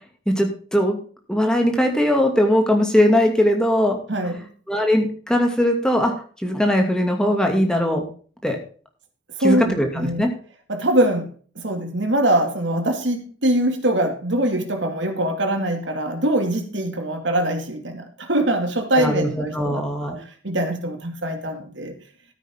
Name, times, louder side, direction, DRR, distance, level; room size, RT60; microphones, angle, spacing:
voice 1, 0.3-1.0 1.3-4.0 4.7-6.1 6.4-8.1 8.4-8.6 9.4-10.3 19.0-20.2, equal, 5° left, 2.3 m, -20 dB
voice 2, 4.1-4.5 9.4-10.3 10.7-11.3 11.6-21.9, right 1 dB, 75° right, 2.4 m, -23 dB
13.5 x 9.1 x 3.7 m
head